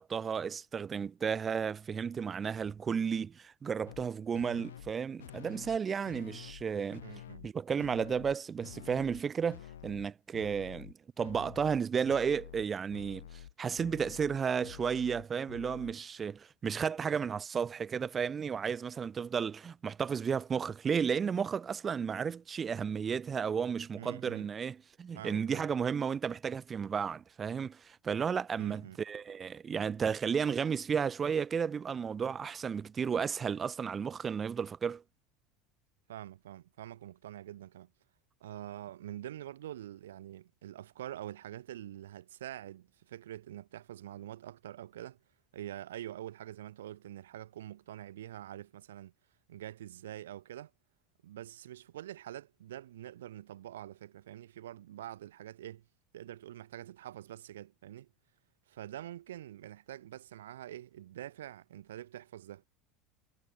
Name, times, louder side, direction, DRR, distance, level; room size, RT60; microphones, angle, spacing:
voice 1, 0.0-7.0 7.4-35.0, right 6 dB, 30° right, 0.8 m, -33 dB
sound 1, 3.9-4.1 4.3-4.9 5.2-5.8 6.1-6.6 6.9-7.5 7.8-8.4 8.6-9.2 9.5-10.1 10.3-10.9 11.2-11.8 12.1-15.9, left 11 dB, 90° left, 3.2 m, -49 dB
voice 2, 7.0-7.5 24.0-24.5 25.1-25.7 28.6-29.0 36.1-37.9 38.4-45.2 45.5-49.1 49.5-50.7 51.2-55.9 56.1-58.1 58.7-62.7, right 12 dB, 85° right, 4.2 m, -45 dB
hypercardioid pair, 90°, 0 cm